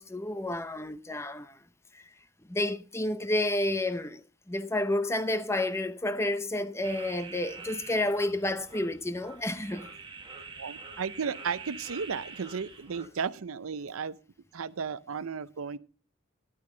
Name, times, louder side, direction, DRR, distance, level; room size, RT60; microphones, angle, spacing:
voice 1, 0.0-1.6 1.9-2.0 2.5-9.9, left 1 dB, 15° left, 0.6 m, -30 dB
sound 1, 6.8-13.1, right 4 dB, 25° right, 1.6 m, -45 dB
voice 2, 10.6-14.2 14.5-15.8, right 6 dB, 85° right, 0.6 m, -34 dB
12.0 x 11.5 x 3.8 m
head